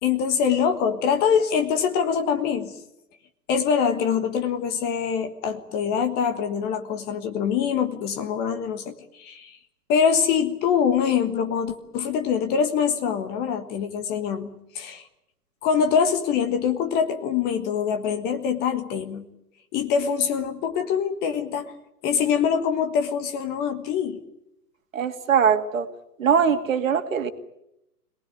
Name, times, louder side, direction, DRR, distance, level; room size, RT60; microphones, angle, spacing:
voice 1, 0.0-2.8 3.5-9.6 9.9-15.0 15.6-19.3 19.7-21.7 22.0-24.2, left 7 dB, 20° left, 1.4 m, -24 dB
voice 2, 24.9-25.9 26.2-27.3, right 7 dB, 55° right, 2.4 m, -21 dB
26.5 x 19.5 x 9.4 m
figure-of-eight pair, 120°, 48 cm